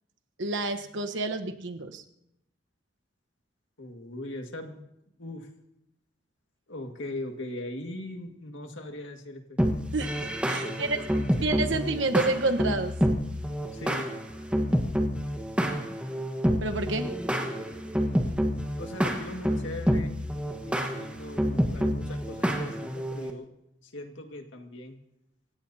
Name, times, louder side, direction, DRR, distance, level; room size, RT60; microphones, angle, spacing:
voice 1, 0.4-2.0 9.9-11.0 11.4-12.9 16.6-17.1, right 3 dB, 75° right, 6 dB, 1.1 m, -29 dB
voice 2, 3.8-4.9 5.2-5.5 6.7-9.6 10.6-11.8 13.7-14.1 18.8-20.2 20.6-23.5 23.8-25.0, left 1 dB, 80° left, 4 dB, 1.9 m, -40 dB
sound 1, 9.6-23.3, equal, 5° right, 1.3 m, -28 dB
27.0 x 16.5 x 2.8 m, 0.81 s
head